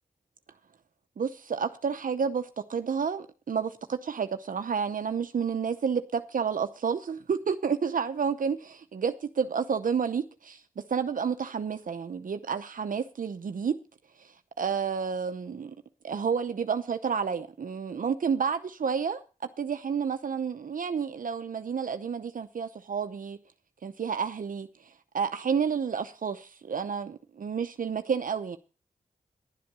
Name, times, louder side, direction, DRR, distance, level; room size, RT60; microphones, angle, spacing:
voice 1, 1.2-8.6 8.9-9.1 9.4-10.6 10.9-13.8 14.2-15.7 16.0-19.2 19.6-23.4 23.8-28.6, right 6 dB, 65° right, 0.8 m, -30 dB
11.5 x 7.6 x 6.7 m
cardioid pair, 60°, 15 cm